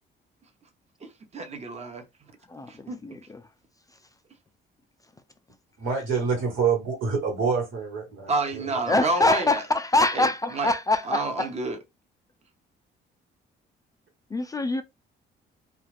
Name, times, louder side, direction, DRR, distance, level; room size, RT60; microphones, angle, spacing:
voice 1, 1.0-2.0 2.7-3.0 8.3-9.6 10.1-10.7 11.0-11.8, right 3 dB, 35° right, 0.8 m, -29 dB
voice 2, 2.5-3.4 8.9-11.5 14.3-14.8, left 2 dB, 20° left, 0.3 m, -24 dB
voice 3, 5.8-8.7, right 5 dB, 85° right, 1.5 m, -27 dB
2.4 x 2.4 x 3.2 m
cardioid pair, 90°, 20 cm